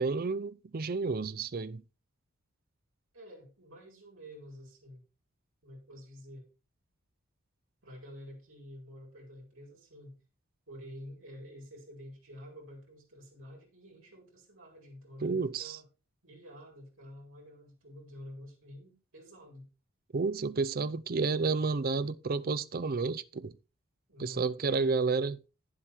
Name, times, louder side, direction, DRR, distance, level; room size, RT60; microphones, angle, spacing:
voice 1, 0.0-1.8 15.2-15.8 20.1-23.5 24.2-25.4, right 4 dB, 45° right, 0.5 m, -31 dB
voice 2, 3.1-5.0 5.6-6.5 7.8-10.2 10.7-15.8 16.2-19.7 24.1-25.0, equal, 70° right, 4.1 m, -49 dB
9.6 x 7.6 x 4.4 m
head